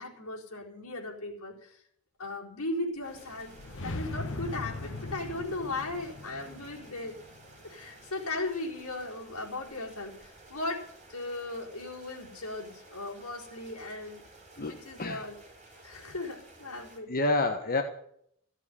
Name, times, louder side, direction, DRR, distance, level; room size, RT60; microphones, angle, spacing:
voice 1, 0.0-1.8 2.2-3.5 3.8-7.1 7.6-14.2 14.6-15.4 15.8-17.1, left 2 dB, 85° left, -2 dB, 4.6 m, -37 dB
sound 1, 3.0-8.2, left 2 dB, 60° left, 1.3 m, -40 dB
sound 2, 3.0-17.0, right 2 dB, 35° right, 4.4 m, -54 dB
voice 2, 14.6-15.3 17.1-17.8, left 2 dB, 40° left, 6 dB, 1.2 m, -29 dB
15.0 x 8.2 x 9.8 m, 0.69 s
head